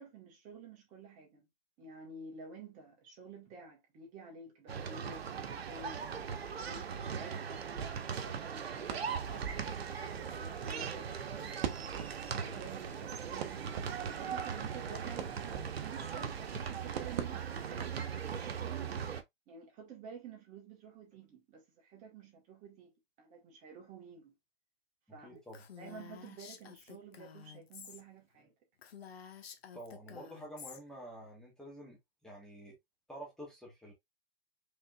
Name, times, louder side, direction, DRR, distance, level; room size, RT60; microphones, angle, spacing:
voice 1, 0.0-1.5 1.8-6.1 6.4-11.1 12.3-13.7 14.1-18.9 19.5-24.3 25.1-25.4 25.8-28.5, right 5 dB, 25° right, 1.7 m, -51 dB
sound 1, 4.7-19.2, right 7 dB, 90° right, 0.9 m, -39 dB
Crackle, 8.8-18.1, right 8 dB, 45° right, 1.1 m, -45 dB
voice 2, 25.2-25.6 29.7-32.8 33.1-33.9, right 1 dB, ahead, 1.6 m, -49 dB
Female speech woman speaking, 25.5-28.0 28.3-28.4 28.8-30.8, left 7 dB, 85° left, 1.2 m, -51 dB
5.3 x 3.6 x 2.4 m
hypercardioid pair, 145°, 30 cm